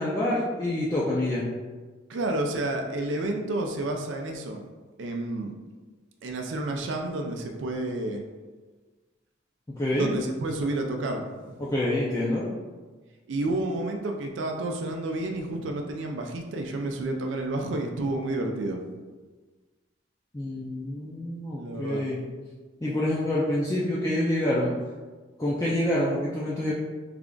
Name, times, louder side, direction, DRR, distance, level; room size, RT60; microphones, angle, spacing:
voice 1, 0.0-1.5 9.8-10.1 11.6-12.5 20.3-22.2 22.8-24.7 25.4-26.7, left 1 dB, 15° left, -7 dB, 0.4 m, -27 dB
voice 2, 2.1-4.6 5.0-5.5 6.2-8.2 9.9-11.6 13.3-18.8 21.6-22.0, right 2 dB, 80° right, 3 dB, 0.4 m, -30 dB
3.3 x 2.4 x 3.7 m, 1.3 s
head